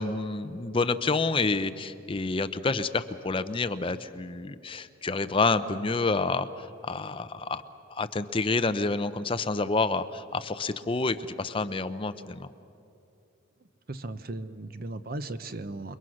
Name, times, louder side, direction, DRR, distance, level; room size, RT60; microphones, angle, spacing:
voice 1, 0.0-7.6 7.9-12.5, left 3 dB, 25° left, 11 dB, 0.6 m, -28 dB
voice 2, 13.9-16.0, right 2 dB, 50° right, 12 dB, 0.8 m, -36 dB
28.5 x 22.5 x 6.4 m, 2.7 s
head